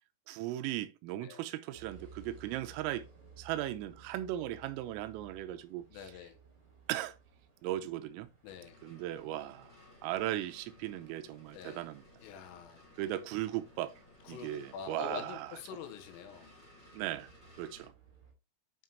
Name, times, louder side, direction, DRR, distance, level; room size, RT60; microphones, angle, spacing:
voice 1, 0.3-3.1 3.4-5.9 6.9-7.2 7.6-8.3 8.8-9.7 10.0-12.0 13.0-13.9 14.3-15.6 16.9-17.3 17.6-17.9, right 14 dB, 85° right, 3.4 m, -37 dB
sound 1, 1.7-18.3, right 5 dB, 40° right, 1.6 m, -60 dB
voice 2, 5.9-6.4 8.4-8.8 11.5-11.8 12.2-12.8 14.3-16.5, left 8 dB, 85° left, 3.6 m, -45 dB
sound 2, 8.5-17.9, left 2 dB, 25° left, 1.4 m, -59 dB
9.6 x 5.5 x 3.0 m
omnidirectional pair, 5.9 m